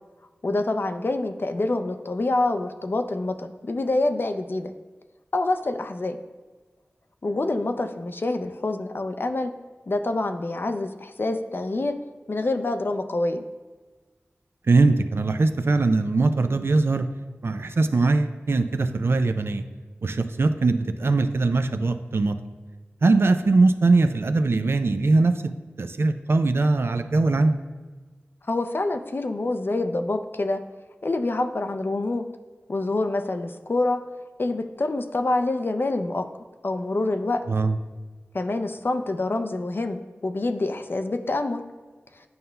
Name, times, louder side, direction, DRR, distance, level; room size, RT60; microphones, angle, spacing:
voice 1, 0.4-4.7 5.3-6.2 7.2-9.5 9.9-12.0 12.3-13.4 28.5-30.6 31.0-32.3 32.7-34.0 34.4-36.2 36.6-37.4 38.3-41.6, left 2 dB, 55° left, 7 dB, 0.4 m, -26 dB
voice 2, 14.7-17.1 17.4-19.6 20.0-22.4 23.0-27.6 37.5-37.8, right 3 dB, 65° right, 9 dB, 0.4 m, -21 dB
9.4 x 5.4 x 2.2 m, 1.3 s
cardioid pair, 45°, 4 cm